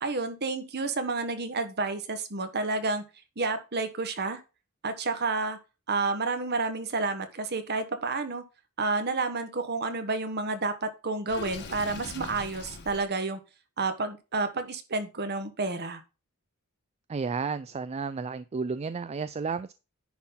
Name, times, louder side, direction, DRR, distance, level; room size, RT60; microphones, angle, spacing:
voice 1, 0.0-3.0 3.4-4.4 4.8-5.6 5.9-8.4 8.8-13.4 13.8-16.0, right 3 dB, 50° right, 1.3 m, -30 dB
Water / Sink (filling or washing), 11.3-13.1, left 3 dB, 50° left, 1.4 m, -41 dB
voice 2, 17.1-19.7, right 5 dB, 30° right, 0.3 m, -32 dB
10.0 x 3.9 x 5.7 m
head